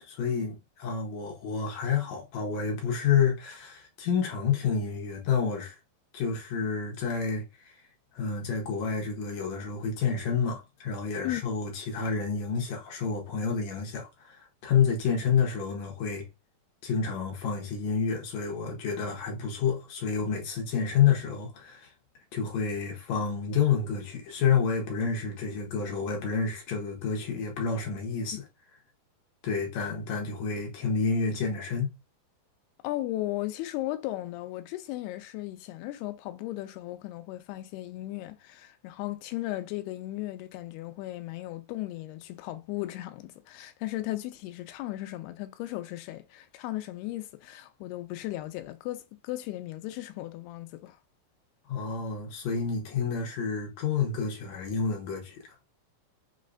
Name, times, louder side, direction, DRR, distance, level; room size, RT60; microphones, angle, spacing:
voice 1, 0.1-5.8 6.1-7.7 8.1-16.3 16.8-21.9 22.3-28.4 29.4-31.9 51.7-55.4, left 6 dB, 70° left, 1.7 m, -29 dB
voice 2, 32.8-51.0, left 16 dB, 90° left, 2.6 m, -36 dB
6.4 x 3.1 x 2.5 m
omnidirectional pair, 4.6 m